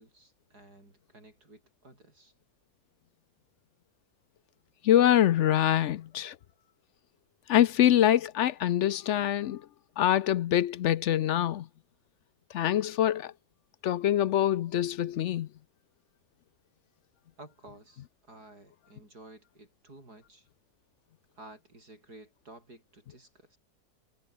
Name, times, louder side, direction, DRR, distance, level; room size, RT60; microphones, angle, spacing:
voice 1, 0.0-2.3 17.4-20.5 21.3-23.6, right 2 dB, 80° right, 8.1 m, -53 dB
voice 2, 4.8-6.3 7.5-9.6 10.0-11.6 12.5-13.3 13.8-15.5, left 11 dB, 65° left, 0.7 m, -24 dB
omnidirectional pair, 1.7 m